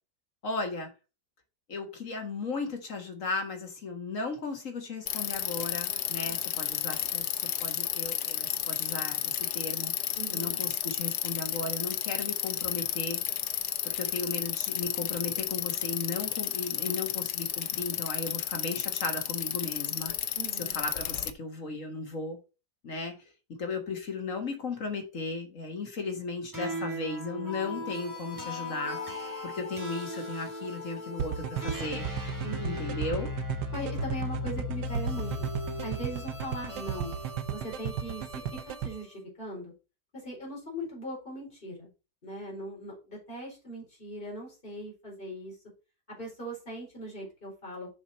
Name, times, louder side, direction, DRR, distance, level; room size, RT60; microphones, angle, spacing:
voice 1, 0.4-0.9 1.7-9.9 10.3-13.2 13.9-20.1 20.6-22.4 22.8-23.2 23.5-32.1 32.6-33.3, left 3 dB, 50° left, 1.9 m, -36 dB
Bicycle, 5.1-21.3, left 11 dB, 80° left, 1.4 m, -32 dB
voice 2, 6.2-6.7 10.1-10.6 20.3-20.8 32.4-32.8 33.7-35.4 35.8-37.1 37.5-39.7 40.1-41.9 42.2-45.6 46.1-48.0, equal, 30° left, 4.6 m, -40 dB
sound 1, 26.5-39.0, left 2 dB, 10° right, 1.9 m, -37 dB
sound 2, 31.2-38.9, right 9 dB, 85° right, 1.3 m, -34 dB
7.3 x 6.2 x 4.3 m
omnidirectional pair, 1.8 m